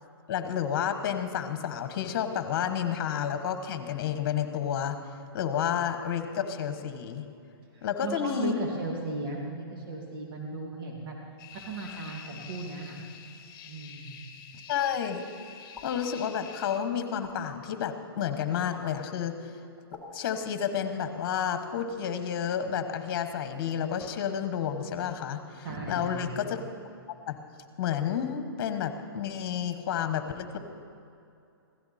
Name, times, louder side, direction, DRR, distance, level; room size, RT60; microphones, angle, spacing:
voice 1, 0.3-5.0 5.3-7.2 7.8-8.6 14.7-15.2 15.8-19.3 20.1-26.6 27.3-27.4 27.8-30.6, left 8 dB, 45° left, 9 dB, 1.2 m, -30 dB
voice 2, 7.7-11.1 11.5-13.0 13.7-14.2 25.6-26.3, right 2 dB, 60° right, -1 dB, 2.5 m, -36 dB
sound 1, 11.4-16.8, left 7 dB, 30° left, 1.5 m, -47 dB
sound 2, 15.7-15.9 17.2-17.4 18.7-18.8 19.9-20.1, left 3 dB, ahead, 4.1 m, -45 dB
16.5 x 14.0 x 4.2 m, 2.5 s
hypercardioid pair, 140°, 13 cm